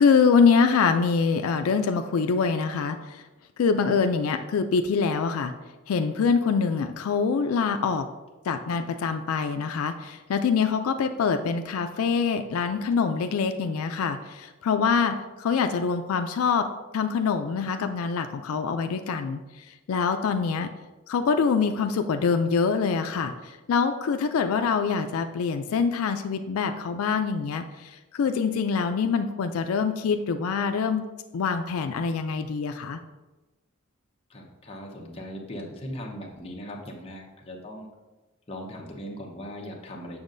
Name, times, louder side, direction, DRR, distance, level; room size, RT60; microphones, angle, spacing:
voice 1, 0.0-3.2 3.6-5.5 5.9-8.1 8.5-16.7 16.9-19.4 19.9-20.7 21.1-31.0 31.3-33.0, left 5 dB, 85° left, 7 dB, 0.4 m, -24 dB
voice 2, 34.3-37.9 38.5-40.2, equal, 30° left, -1 dB, 0.9 m, -39 dB
7.1 x 6.2 x 2.6 m, 1.1 s
head